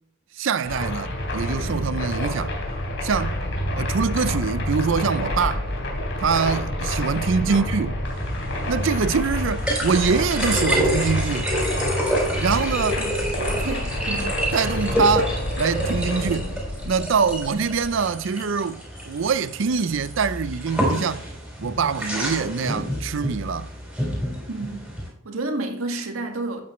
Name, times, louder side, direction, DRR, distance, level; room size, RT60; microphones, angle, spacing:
voice 1, 0.4-2.6 3.0-3.4 3.7-5.7 6.2-7.9 8.7-11.5 12.4-13.0 13.6-13.8 14.5-16.5 16.8-18.8 19.1-21.3 21.6-23.7, right 5 dB, 60° right, 0.5 m, -24 dB
sound 1, 0.6-18.0, left 1 dB, 60° left, 3.5 m, -28 dB
sound 2, 8.0-25.1, equal, 5° right, 3.8 m, -28 dB
voice 2, 13.0-14.3 24.5-24.9 25.2-26.6, right 2 dB, 80° right, 1.9 m, -31 dB
12.0 x 8.7 x 3.2 m
head